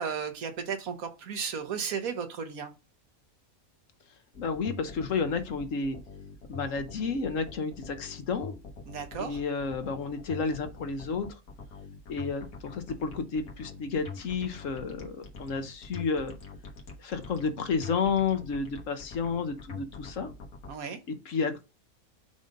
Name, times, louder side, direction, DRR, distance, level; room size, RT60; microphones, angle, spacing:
voice 1, 0.0-2.7 8.9-9.4 20.7-21.0, right 6 dB, 75° right, 1.5 m, -34 dB
sound 1, 4.3-20.7, left 4 dB, 85° left, 1.9 m, -44 dB
voice 2, 4.4-6.0 6.5-8.5 9.2-11.3 12.1-16.3 17.0-20.3 21.1-21.5, left 5 dB, 65° left, 1.3 m, -31 dB
5.6 x 3.9 x 5.2 m
omnidirectional pair, 1.5 m